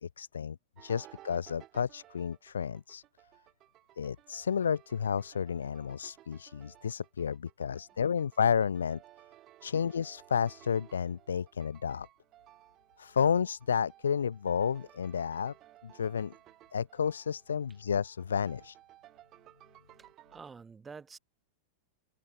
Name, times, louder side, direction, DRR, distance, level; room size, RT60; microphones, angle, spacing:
voice 1, 0.0-3.0 4.0-9.0 9.6-12.1 13.0-15.5 15.8-16.3 16.7-18.8, left 7 dB, 80° left, 0.3 m, -31 dB
sound 1, 0.8-20.5, right 14 dB, 40° right, 1.8 m, -58 dB
voice 2, 20.0-21.2, right 5 dB, 15° right, 2.8 m, -49 dB
open air
figure-of-eight pair, 95°, 0 cm